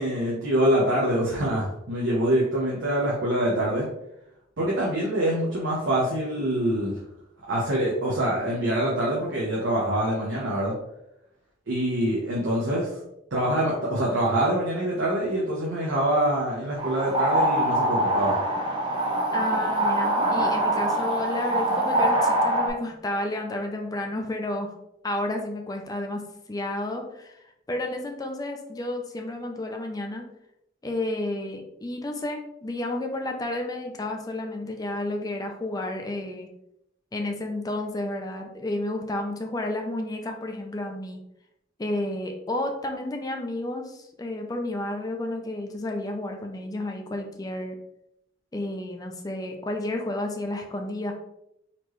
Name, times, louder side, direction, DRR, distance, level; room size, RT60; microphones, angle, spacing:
voice 1, 0.0-3.9 4.6-7.0 7.5-10.7 11.7-12.9 13.3-18.4, right 1 dB, 75° right, -4 dB, 0.9 m, -25 dB
sound 1, 16.8-22.7, right 1 dB, 25° right, 0.7 m, -24 dB
voice 2, 19.3-24.7 25.0-26.2 26.5-30.3 30.8-36.5 37.1-41.2 41.8-47.8 48.5-51.1, left 1 dB, 20° left, 3 dB, 0.4 m, -31 dB
4.3 x 3.0 x 3.1 m, 0.82 s
head